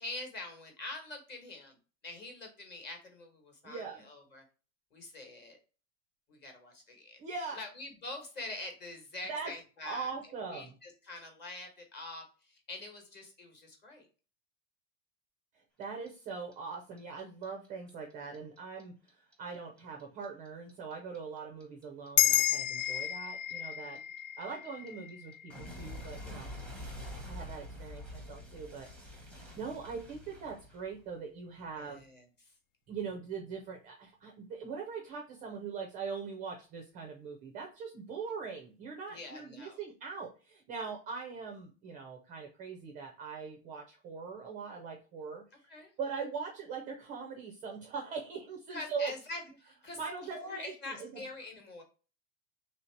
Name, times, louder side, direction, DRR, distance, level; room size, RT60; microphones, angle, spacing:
voice 1, 0.0-1.8 2.0-4.4 4.9-5.6 6.3-7.2 7.5-10.1 10.5-14.1 22.9-23.1 23.8-24.0 31.8-32.5 39.1-39.8 45.7-45.9 48.7-50.0 50.3-51.8, left 2 dB, 25° left, 3 dB, 1.1 m, -45 dB
voice 2, 3.6-4.0 7.2-7.6 9.3-9.5 9.8-10.8 15.5-24.0 24.4-26.5 27.3-32.0 32.9-45.4 46.0-49.1 50.0-51.2, right 5 dB, 20° right, 3 dB, 0.4 m, -41 dB
Clock, 15.8-18.8 19.1-22.1 22.3-31.2, left 1 dB, ahead, 0.7 m, -46 dB
sound 1, 22.2-26.9, left 13 dB, 60° left, 0.5 m, -32 dB
3.2 x 2.7 x 4.4 m, 0.35 s
supercardioid pair, 150°, 40 cm